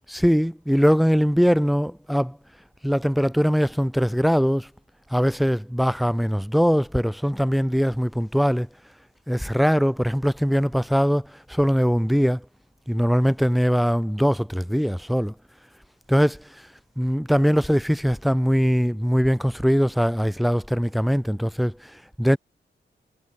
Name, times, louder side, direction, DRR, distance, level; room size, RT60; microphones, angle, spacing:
voice 1, 0.1-2.4 2.8-4.7 5.1-8.7 9.3-12.4 12.9-15.3 16.1-16.4 17.0-21.7 22.2-22.4, equal, ahead, 1.6 m, -21 dB
wide cardioid pair, 120°, 19 cm